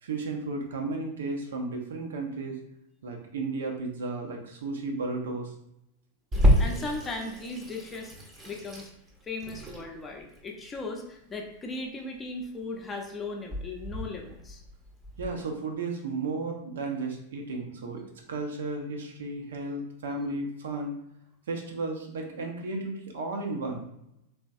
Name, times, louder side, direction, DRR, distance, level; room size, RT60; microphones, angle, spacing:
voice 1, 0.0-2.6 3.0-5.5 15.2-20.9 21.5-23.9, right 3 dB, 60° right, 2 dB, 0.6 m, -34 dB
Water tap faucet / Sink (filling or washing), 6.3-15.3, equal, 15° right, 0.7 m, -30 dB
voice 2, 6.6-8.1 8.5-8.9 9.2-14.6, left 2 dB, 20° left, 2 dB, 0.6 m, -37 dB
3.4 x 3.0 x 2.6 m, 0.80 s
figure-of-eight pair, 90°, 0 cm